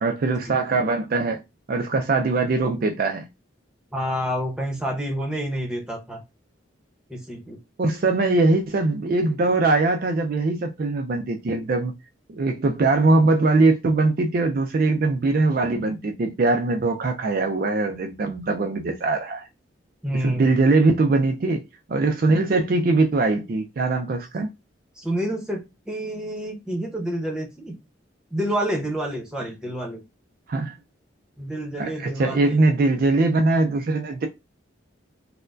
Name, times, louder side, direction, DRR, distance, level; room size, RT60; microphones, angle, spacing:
voice 1, 0.0-1.4 1.7-3.3 7.8-11.9 12.3-19.5 20.2-21.6 21.9-24.5 30.5-30.8 31.8-34.3, right 3 dB, 45° right, 0.3 m, -21 dB
voice 2, 3.9-6.2 7.1-7.6 20.0-20.5 25.0-27.7 28.3-30.0 31.4-32.6, equal, 5° right, 0.9 m, -28 dB
4.2 x 2.1 x 2.5 m
head